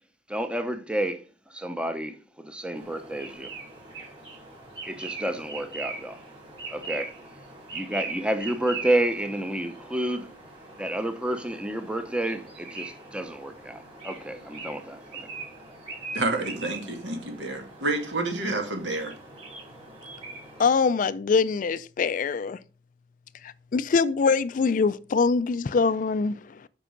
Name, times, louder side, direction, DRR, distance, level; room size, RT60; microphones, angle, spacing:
voice 1, 0.3-1.2 1.5-3.5 4.9-6.2 6.7-7.1 7.7-10.3 10.8-15.3, right 1 dB, 5° right, 0.6 m, -30 dB
sound 1, 2.7-20.7, right 3 dB, 30° right, 4.0 m, -41 dB
voice 2, 16.1-19.2, right 2 dB, 75° right, 2.1 m, -29 dB
voice 3, 20.6-22.6 23.4-26.7, left 5 dB, 45° left, 0.3 m, -24 dB
7.5 x 5.5 x 5.2 m
head